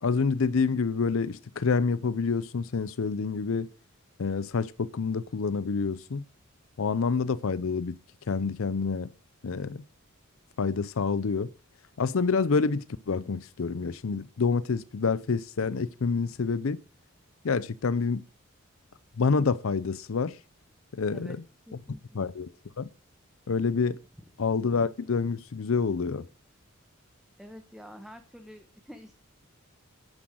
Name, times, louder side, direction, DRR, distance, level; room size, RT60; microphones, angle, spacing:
voice 1, 0.0-3.7 4.2-6.2 6.8-7.9 8.3-9.1 9.4-9.8 10.6-11.5 12.0-16.8 17.4-18.2 19.2-20.4 20.9-21.4 22.1-22.9 23.5-24.0 24.4-26.3, left 5 dB, 70° left, 0.5 m, -27 dB
voice 2, 21.7-22.3 27.4-29.1, equal, ahead, 1.2 m, -47 dB
10.0 x 9.7 x 6.2 m
head